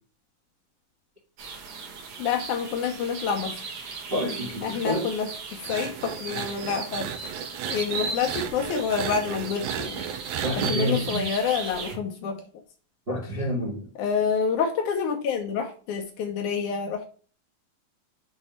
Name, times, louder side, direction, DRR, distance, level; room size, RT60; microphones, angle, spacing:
sound 1, 1.4-12.0, right 4 dB, 60° right, 1.6 m, -37 dB
voice 1, 2.2-3.6 4.6-7.1 7.7-10.0 10.6-12.4 14.0-17.1, left 6 dB, 75° left, 2.0 m, -28 dB
voice 2, 4.1-5.1 10.4-11.2 13.1-13.8, equal, 40° right, 0.8 m, -28 dB
sound 2, 5.6-10.8, right 9 dB, 80° right, 1.7 m, -34 dB
6.3 x 3.8 x 4.2 m
omnidirectional pair, 4.0 m